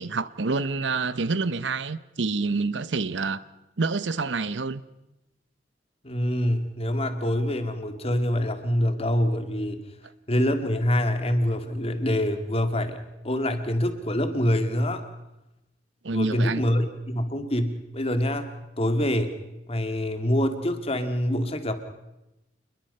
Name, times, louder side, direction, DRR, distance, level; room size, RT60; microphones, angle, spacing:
voice 1, 0.0-3.4 3.8-4.8 16.0-16.7, right 3 dB, 80° right, 0.8 m, -27 dB
voice 2, 6.0-9.8 10.3-13.0 13.2-15.0 16.1-19.3 19.7-21.7, left 1 dB, 35° left, 2.1 m, -25 dB
28.0 x 21.5 x 5.5 m
head